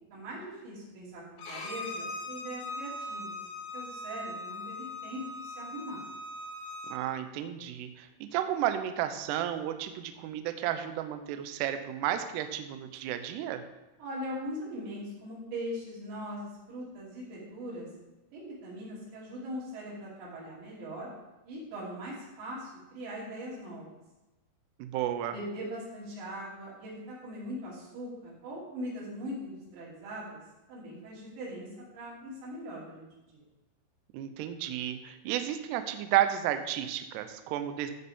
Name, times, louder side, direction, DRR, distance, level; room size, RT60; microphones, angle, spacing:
voice 1, 0.1-3.4 3.7-6.1 14.0-17.9 18.3-21.1 21.4-23.9 25.3-30.4 30.7-33.4, equal, 65° right, -6 dB, 5.2 m, -41 dB
Bowed string instrument, 1.4-7.0, left 2 dB, 90° left, 4.3 m, -40 dB
voice 2, 6.9-13.6 24.8-25.3 34.1-37.9, right 11 dB, 90° right, 8 dB, 2.3 m, -32 dB
14.5 x 6.8 x 3.6 m, 1.0 s
omnidirectional pair, 5.7 m